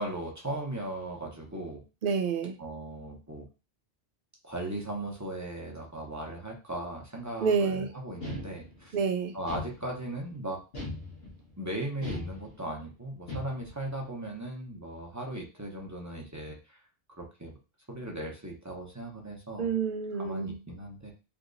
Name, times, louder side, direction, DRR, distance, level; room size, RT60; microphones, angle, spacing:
voice 1, 0.0-1.8 2.6-3.5 4.4-9.0 9.3-10.6 11.6-16.8 17.2-17.5 17.9-19.7 20.1-21.1, right 1 dB, 20° right, 0.7 m, -37 dB
voice 2, 2.0-2.6 7.4-7.9 8.9-9.4 19.6-20.6, right 5 dB, 60° right, 0.7 m, -28 dB
sound 1, 8.2-9.0 9.5-10.2 10.7-11.5 12.0-12.8 13.3-13.9, left 2 dB, 65° left, 1.5 m, -39 dB
3.4 x 2.9 x 2.5 m
omnidirectional pair, 1.1 m